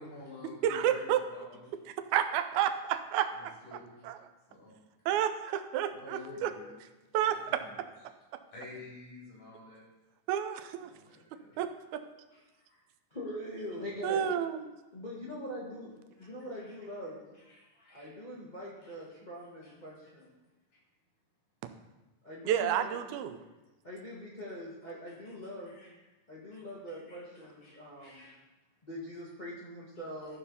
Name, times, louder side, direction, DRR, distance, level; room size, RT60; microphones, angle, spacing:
voice 1, 0.0-1.6 3.3-4.0 4.5-4.7 5.9-6.7 7.2-7.8 8.5-9.8 10.8-11.6 12.3-12.8 16.2-16.3 16.6-16.9 17.4-18.1 18.8-18.9 19.6-19.7 25.3-25.4 25.7-25.9 26.5-26.6 26.9-27.2 27.6-28.4, left 3 dB, 80° left, -7 dB, 5.6 m, -50 dB
voice 2, 0.6-1.2 2.1-3.5 4.0-4.2 5.1-6.5 7.1-7.6 10.3-10.9 11.6-12.0 14.0-14.6 22.5-23.4, right 10 dB, 75° right, 8 dB, 1.9 m, -30 dB
voice 3, 13.1-14.3 14.9-15.9 16.2-17.2 17.9-20.3 22.2-22.9 23.8-25.7 26.3-28.3 28.8-30.4, equal, 25° left, -6 dB, 0.9 m, -43 dB
13.5 x 4.5 x 5.5 m, 1.1 s
omnidirectional pair, 3.6 m